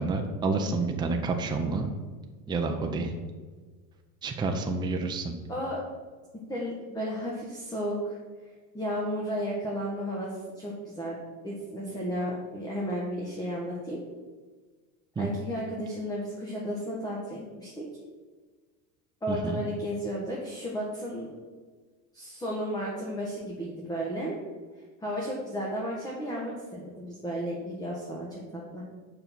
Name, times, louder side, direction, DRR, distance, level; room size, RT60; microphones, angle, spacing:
voice 1, 0.0-1.9 2.5-3.1 4.2-5.3 15.2-15.3 19.3-19.6, right 3 dB, 10° right, 3 dB, 0.6 m, -29 dB
voice 2, 5.5-5.8 6.5-8.2 8.7-11.1 11.4-14.0 15.2-17.9 19.2-21.3 22.1-24.3 25.0-28.8, equal, 10° left, -3 dB, 1.4 m, -33 dB
6.8 x 5.4 x 6.0 m, 1.4 s
supercardioid pair, 130°, 44 cm